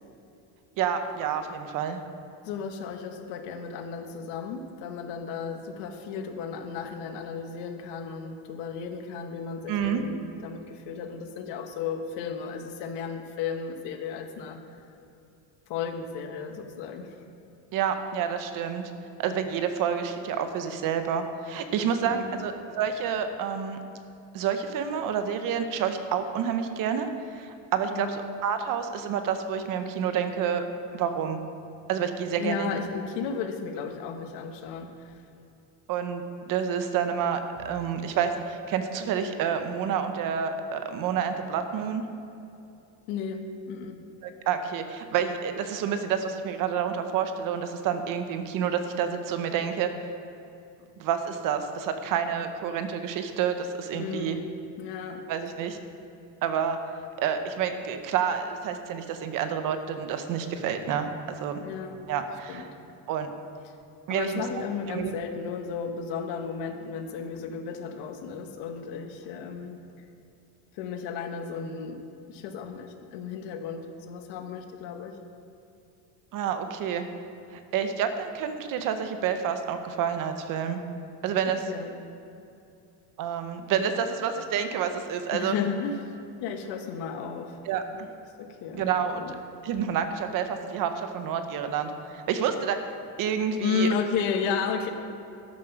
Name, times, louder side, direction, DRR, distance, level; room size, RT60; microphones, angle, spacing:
voice 1, 0.8-2.0 9.7-10.0 17.7-18.9 19.2-23.8 24.3-27.1 27.3-30.6 30.9-31.4 31.9-32.8 35.9-37.4 37.6-42.0 44.2-49.9 51.0-54.4 55.3-55.8 56.4-56.8 57.2-61.6 62.1-62.7 63.1-63.3 64.1-64.4 64.9-65.1 76.3-77.0 77.5-80.8 81.2-81.6 83.2-85.5 87.7-88.1 88.7-89.2 89.6-92.8 93.2-93.9, right 7 dB, 50° right, 8 dB, 0.9 m, -29 dB
voice 2, 2.4-14.6 15.7-17.2 22.0-22.5 27.9-28.3 32.4-35.2 43.1-44.0 53.9-54.5 54.8-55.2 61.6-62.0 62.5-62.7 64.1-69.8 70.7-72.0 72.3-75.2 81.7-81.9 85.3-87.6 87.9-88.1 88.4-88.9 89.1-89.4 93.6-94.9, left 6 dB, 80° left, 6 dB, 1.3 m, -34 dB
13.0 x 7.4 x 5.9 m, 2.7 s
cardioid pair, 175°, 41 cm